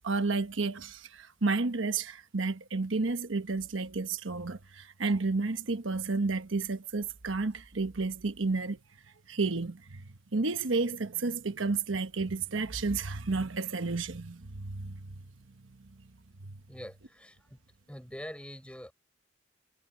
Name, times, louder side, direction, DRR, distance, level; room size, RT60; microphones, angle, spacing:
voice 1, 0.0-8.8 9.3-10.0 10.3-15.0, right 3 dB, 80° right, 1.1 m, -31 dB
voice 2, 16.7-17.6 17.9-18.9, equal, 5° left, 6.2 m, -44 dB
head